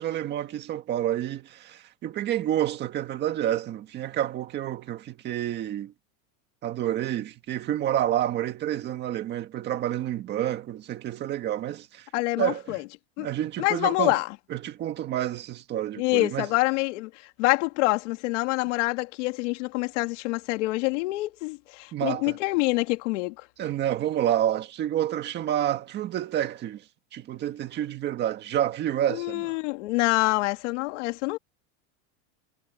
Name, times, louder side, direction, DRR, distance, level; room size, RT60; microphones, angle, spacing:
voice 1, 0.0-5.9 6.6-12.1 12.4-12.8 13.2-14.2 14.5-16.5 21.9-22.4 23.6-26.8 27.1-29.6, right 11 dB, 25° right, 1.8 m, -29 dB
voice 2, 12.1-12.8 13.2-13.3 13.6-14.3 16.0-23.3 29.1-31.4, left 22 dB, 60° left, 3.0 m, -26 dB
supercardioid pair, 175°, 40 cm